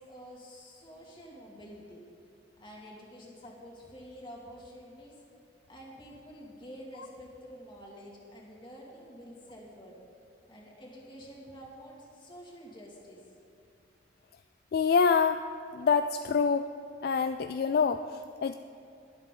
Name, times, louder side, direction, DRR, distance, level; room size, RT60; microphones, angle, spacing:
voice 1, 0.1-2.0 2.6-5.2 5.7-9.9 10.5-13.2, equal, 25° left, -3 dB, 2.4 m, -48 dB
voice 2, 14.7-15.4 15.7-16.7 17.0-18.5, left 5 dB, 55° left, 9 dB, 0.3 m, -26 dB
22.0 x 8.0 x 3.8 m, 2.6 s
head